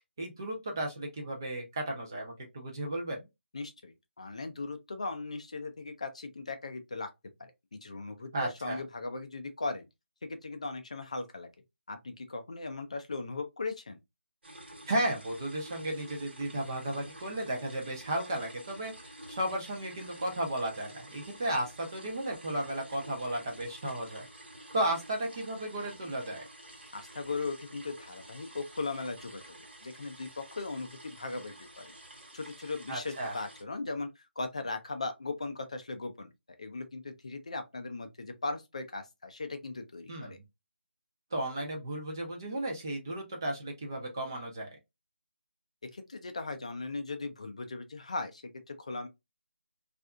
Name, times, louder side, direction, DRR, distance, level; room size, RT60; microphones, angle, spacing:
voice 1, 0.2-3.2 8.3-8.8 14.9-24.3 24.7-26.5 32.9-33.4 40.1-40.4 41.3-44.7, right 1 dB, 20° right, 0.5 m, -34 dB
voice 2, 3.5-7.1 7.4-9.9 10.2-11.5 11.9-14.0 26.9-29.4 29.8-31.9 32.3-36.3 36.6-40.4 45.8-49.1, left 3 dB, 30° left, 0.4 m, -38 dB
sound 1, 14.4-33.6, right 1 dB, 55° right, 1.2 m, -50 dB
2.6 x 2.4 x 2.2 m
figure-of-eight pair, 175°, 7 cm